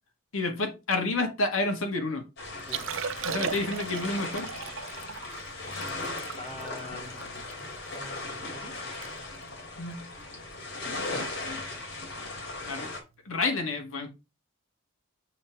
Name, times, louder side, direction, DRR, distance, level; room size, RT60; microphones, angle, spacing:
voice 1, 0.3-2.3 3.2-4.5 9.8-10.1 11.4-11.7 12.6-12.9 13.2-14.1, left 2 dB, 85° left, 2.0 m, -30 dB
sound 1, 2.4-13.0, left 2 dB, 55° left, 3.6 m, -38 dB
Liquid, 2.6-8.0 8.4-8.5 8.8-9.1 9.4-9.6 10.2-10.4 11.9-12.0, right 6 dB, 70° right, 0.7 m, -37 dB
voice 2, 2.7-3.0 6.4-7.5 7.9-9.1 11.1-11.8, left 2 dB, 30° left, 2.2 m, -45 dB
8.6 x 4.3 x 4.8 m
head